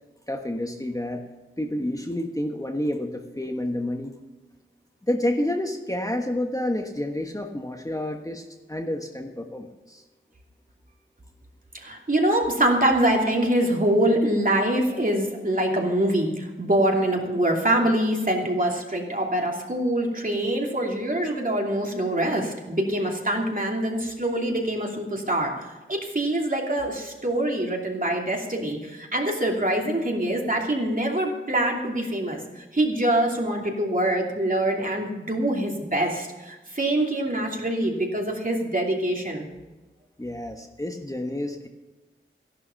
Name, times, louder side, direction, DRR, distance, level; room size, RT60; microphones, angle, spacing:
voice 1, 0.3-1.2 1.6-4.1 5.0-8.4 8.7-10.0 40.2-41.7, left 1 dB, 15° left, 3 dB, 1.3 m, -29 dB
voice 2, 11.7-25.5 25.9-39.5, right 1 dB, 40° right, 0 dB, 2.9 m, -24 dB
14.0 x 11.5 x 5.7 m, 1.1 s
wide cardioid pair, 55°, 21 cm